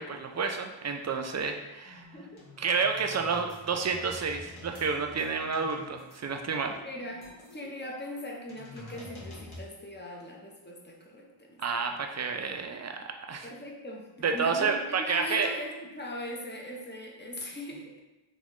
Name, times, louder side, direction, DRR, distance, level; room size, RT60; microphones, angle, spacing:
voice 1, 0.0-2.1 2.6-6.8 11.6-13.5 14.2-15.5, right 5 dB, 35° right, 4 dB, 0.4 m, -30 dB
sound 1, 1.8-9.6, left 1 dB, 80° left, 1.0 m, -49 dB
voice 2, 2.1-2.4 6.8-11.6 13.4-18.0, left 1 dB, 25° left, -1 dB, 0.6 m, -40 dB
4.0 x 2.3 x 2.9 m, 1.1 s
wide cardioid pair, 55°, 48 cm